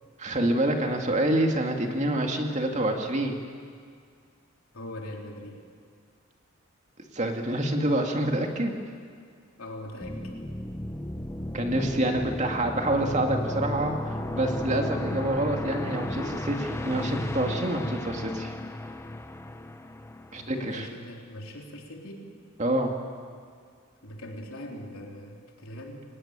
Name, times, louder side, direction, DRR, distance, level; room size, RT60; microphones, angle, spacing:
voice 1, 0.2-3.3 7.1-8.8 11.5-18.5 20.3-20.9 22.6-22.9, right 1 dB, 35° right, 3 dB, 2.3 m, -27 dB
voice 2, 4.7-5.6 9.6-10.3 20.4-22.3 24.0-26.0, left 1 dB, 85° left, 0 dB, 3.8 m, -41 dB
sound 1, 10.0-20.7, left 1 dB, 15° left, 0.9 m, -34 dB
23.5 x 19.0 x 8.9 m, 2.1 s
head